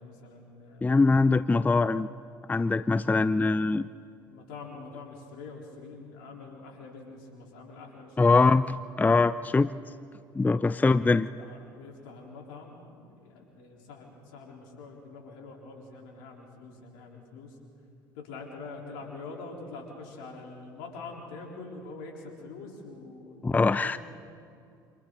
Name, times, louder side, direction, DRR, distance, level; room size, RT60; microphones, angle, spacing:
voice 1, 0.0-1.0 4.3-8.4 10.7-17.5 18.1-24.0, left 3 dB, 75° left, 0 dB, 4.1 m, -45 dB
voice 2, 0.8-2.1 2.5-3.9 8.2-9.7 10.3-11.3 23.4-24.0, left 3 dB, 15° left, 15 dB, 0.5 m, -23 dB
28.0 x 26.5 x 4.1 m, 2.5 s
hypercardioid pair, 60°, 11 cm